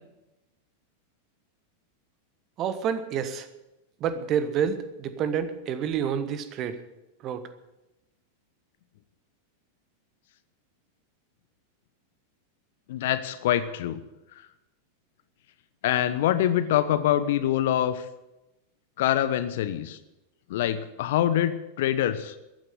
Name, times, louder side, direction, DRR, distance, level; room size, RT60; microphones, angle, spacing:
voice 1, 2.6-3.5 4.0-6.8 7.2-7.4, right 7 dB, 35° right, 12 dB, 1.3 m, -28 dB
voice 2, 12.9-14.0 15.8-18.1 19.0-20.0 20.5-22.4, left 11 dB, 55° left, 13 dB, 0.9 m, -25 dB
14.0 x 9.3 x 9.4 m, 0.97 s
figure-of-eight pair, 90°, 0 cm